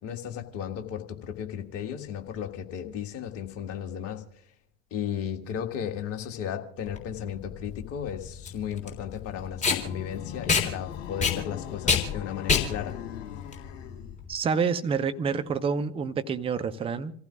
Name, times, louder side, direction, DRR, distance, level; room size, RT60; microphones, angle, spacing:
voice 1, 0.0-4.2 4.9-13.0, left 9 dB, 40° left, 4 dB, 1.9 m, -35 dB
Packing tape duct tape, 6.9-14.3, left 5 dB, 20° left, 3.5 m, -28 dB
sound 1, 9.6-14.2, left 9 dB, 60° left, 2.0 m, -41 dB
voice 2, 14.3-17.1, right 5 dB, 15° right, 11 dB, 0.7 m, -28 dB
28.5 x 15.0 x 2.4 m, 0.62 s
figure-of-eight pair, 75°, 36 cm